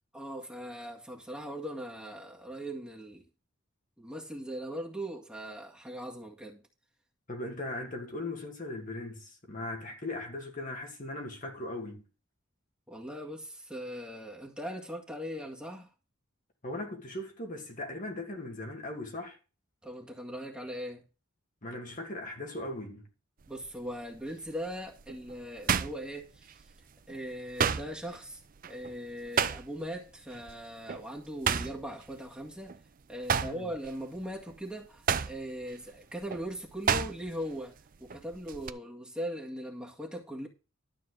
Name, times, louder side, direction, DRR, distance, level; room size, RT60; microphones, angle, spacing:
voice 1, 0.1-3.2 4.0-6.6 12.9-15.9 19.8-21.0 23.5-26.6 27.1-28.4 28.7-32.8 33.1-40.5, equal, 5° right, 1.9 m, -40 dB
voice 2, 7.3-12.0 16.6-19.4 21.6-23.1 33.3-33.7, left 2 dB, 40° left, 2.0 m, -39 dB
sound 1, 23.4-23.8 24.3-26.8 27.1-30.0 30.3-30.5 30.9-32.8 33.1-37.5 37.8-38.7, right 7 dB, 40° right, 0.5 m, -32 dB
12.5 x 4.4 x 7.9 m
head